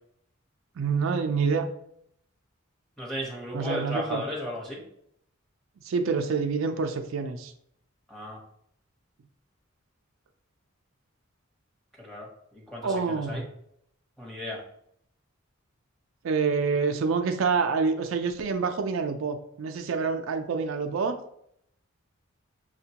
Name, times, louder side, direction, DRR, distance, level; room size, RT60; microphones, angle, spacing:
voice 1, 0.8-1.7 3.5-4.2 5.8-7.5 12.8-13.5 16.2-21.2, right 5 dB, 70° right, 6 dB, 0.4 m, -27 dB
voice 2, 3.0-4.8 8.1-8.4 12.0-13.4 14.2-14.6, equal, ahead, -4 dB, 0.9 m, -35 dB
6.4 x 2.2 x 2.8 m, 0.71 s
head